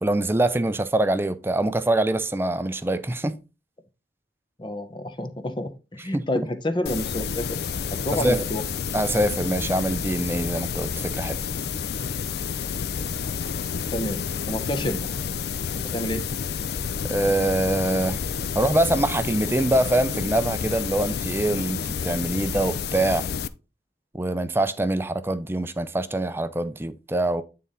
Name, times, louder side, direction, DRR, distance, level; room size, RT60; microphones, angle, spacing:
voice 1, 0.0-3.4 6.1-6.5 8.1-8.5 8.9-11.4 17.1-18.2 18.6-23.3 24.1-27.4, right 1 dB, 15° right, 0.4 m, -24 dB
voice 2, 4.6-7.6 7.9-8.6 13.9-14.2 14.5-15.1 15.9-16.2, left 1 dB, 25° left, 0.7 m, -29 dB
sound 1, 6.9-23.5, left 6 dB, 60° left, 0.4 m, -30 dB
9.0 x 3.8 x 4.0 m
head